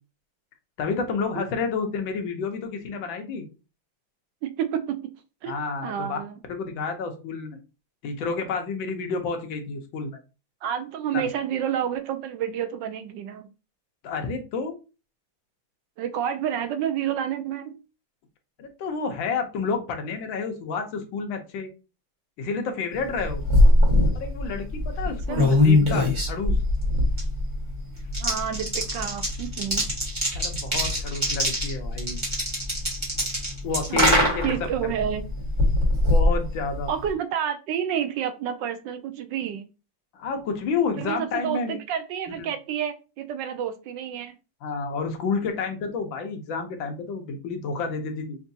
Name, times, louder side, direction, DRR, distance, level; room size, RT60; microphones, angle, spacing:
voice 1, 0.8-3.5 5.5-6.2 6.5-7.6 8.0-10.2 14.0-14.8 18.6-21.7 22.4-23.4 24.1-26.6 30.4-32.2 33.6-34.7 36.1-36.9 40.1-41.8 42.4-42.5 44.6-48.4, left 4 dB, 75° left, 4 dB, 1.6 m, -30 dB
voice 2, 4.4-5.0 5.4-5.5 5.8-6.4 10.6-13.5 16.0-17.8 25.3-25.4 28.2-29.9 33.9-34.0 34.4-35.2 36.9-39.7 41.0-44.3, right 9 dB, 75° right, 9 dB, 1.1 m, -29 dB
sound 1, 23.0-37.1, left 1 dB, 15° right, 1.3 m, -23 dB
5.9 x 2.6 x 2.7 m, 0.31 s
omnidirectional pair, 2.1 m